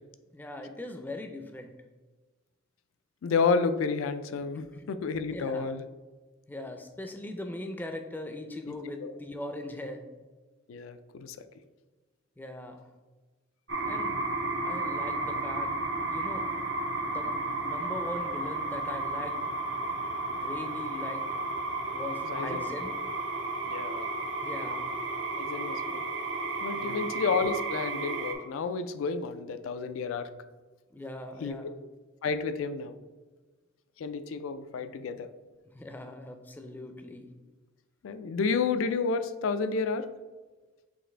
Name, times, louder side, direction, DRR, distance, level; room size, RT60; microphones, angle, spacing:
voice 1, 0.3-1.7 4.7-4.8 5.3-5.7 6.5-10.0 12.4-12.9 13.8-14.1 14.6-15.7 16.1-16.5 17.0-17.3 17.6-19.4 20.3-21.3 21.9-22.9 24.4-24.9 26.7-27.1 30.9-31.8 35.6-37.3, left 1 dB, 10° left, 5 dB, 0.3 m, -40 dB
voice 2, 3.2-5.8 9.0-9.1 10.7-11.4 22.2-22.6 23.6-24.1 25.4-26.0 26.6-30.3 31.4-31.6 32.2-32.9 34.0-35.3 38.0-40.1, left 4 dB, 90° left, 10 dB, 0.3 m, -30 dB
sound 1, 13.7-28.3, right 2 dB, 70° right, 0.6 m, -33 dB
6.2 x 2.5 x 3.3 m, 1.3 s
head